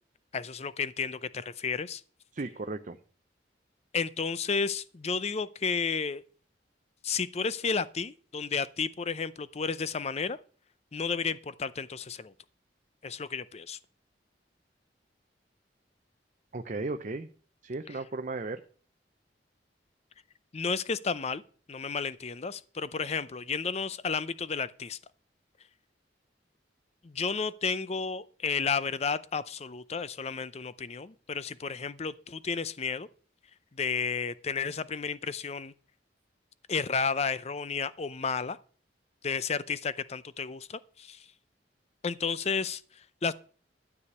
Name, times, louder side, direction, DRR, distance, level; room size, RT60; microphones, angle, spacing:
voice 1, 0.3-2.0 3.9-6.2 7.0-10.4 10.9-12.3 13.0-13.8 17.9-18.0 20.5-21.4 21.7-25.0 27.0-33.1 33.7-35.7 36.7-38.6 39.2-41.3 42.0-43.3, left 5 dB, 35° left, 0.5 m, -32 dB
voice 2, 2.3-3.0 16.5-17.3 17.6-18.6, right 3 dB, 45° right, 0.7 m, -35 dB
12.5 x 4.9 x 8.3 m
head